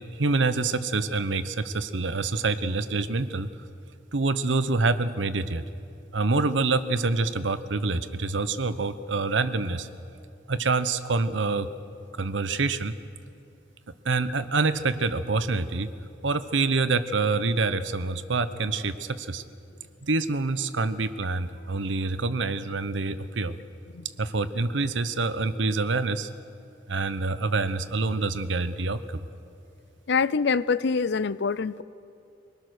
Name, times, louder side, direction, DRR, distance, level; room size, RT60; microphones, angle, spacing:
voice 1, 0.2-3.5 4.1-5.6 6.1-9.9 10.5-11.7 12.1-13.0 14.0-15.9 16.2-19.4 20.0-23.6 24.2-26.3 26.9-29.2, right 3 dB, 85° right, 12 dB, 0.9 m, -26 dB
voice 2, 30.1-31.8, left 5 dB, 65° left, 18 dB, 0.5 m, -25 dB
23.5 x 19.5 x 6.5 m, 2.6 s
head